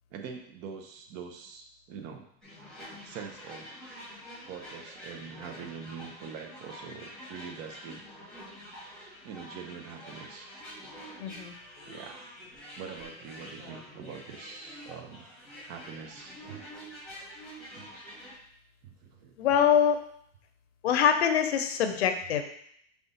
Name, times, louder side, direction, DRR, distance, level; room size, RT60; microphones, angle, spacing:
voice 1, 0.1-2.3 3.0-3.7 4.5-8.0 9.2-10.5 11.8-12.2 12.8-15.2 15.7-16.6 17.7-17.9 18.8-19.3, right 6 dB, 35° right, 3 dB, 0.6 m, -44 dB
sound 1, 2.4-18.3, equal, ahead, 1.6 m, -47 dB
voice 2, 11.2-11.5 19.4-20.0 20.8-22.4, left 8 dB, 90° left, 7 dB, 0.7 m, -24 dB
4.9 x 2.3 x 3.9 m, 0.68 s
supercardioid pair, 135°, 31 cm